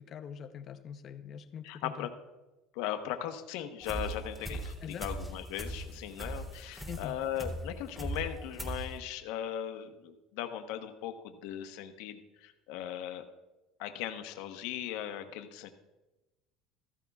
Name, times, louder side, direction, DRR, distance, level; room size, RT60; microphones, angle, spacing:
voice 1, 0.0-2.1 4.8-5.1 6.9-7.2, left 8 dB, 40° left, 9 dB, 0.7 m, -43 dB
voice 2, 1.6-2.1 2.7-13.2 13.8-15.7, left 11 dB, 75° left, 6 dB, 1.0 m, -38 dB
sound 1, 3.8-9.0, right 1 dB, 10° right, 2.7 m, -40 dB
15.0 x 14.0 x 2.4 m, 1.1 s
supercardioid pair, 125°, 0 cm